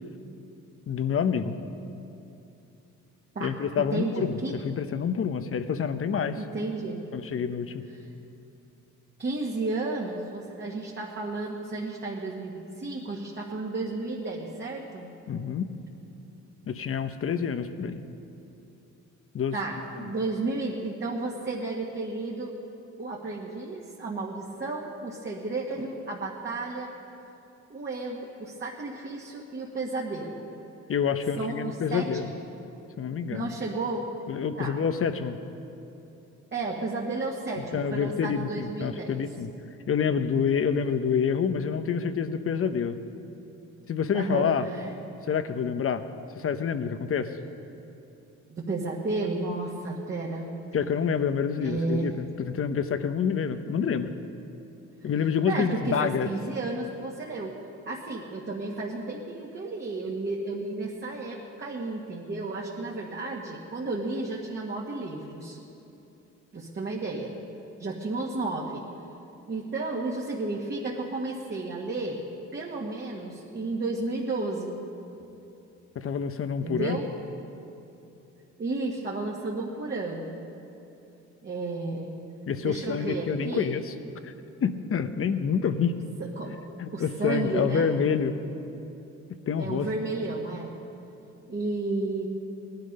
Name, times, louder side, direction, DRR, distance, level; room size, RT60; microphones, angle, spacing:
voice 1, 0.9-1.6 3.4-6.4 7.1-7.8 15.3-15.7 16.7-18.0 19.3-19.6 30.9-32.3 33.0-33.5 34.3-35.4 37.7-39.5 39.9-43.0 43.9-44.7 45.3-46.0 46.4-47.3 50.7-54.1 55.0-56.3 75.9-77.0 82.5-83.8 84.2-84.3 84.6-85.9 86.8-88.4 89.5-89.9, left 7 dB, 45° left, 10 dB, 0.9 m, -27 dB
voice 2, 3.4-4.6 6.4-7.0 9.2-15.1 19.5-22.5 23.0-26.9 27.7-30.5 31.4-32.2 33.3-34.1 34.6-34.8 36.5-39.2 44.1-44.9 48.5-50.5 51.5-52.1 55.5-57.6 57.8-65.6 66.5-67.4 67.8-68.8 69.5-72.2 72.5-74.8 76.6-77.1 78.6-80.4 81.4-82.2 82.6-83.8 86.2-86.6 86.9-87.9 89.6-90.8 91.5-92.3, right 3 dB, 35° right, -3 dB, 1.8 m, -32 dB
18.0 x 12.0 x 5.4 m, 2.8 s
cardioid pair, 90°, 30 cm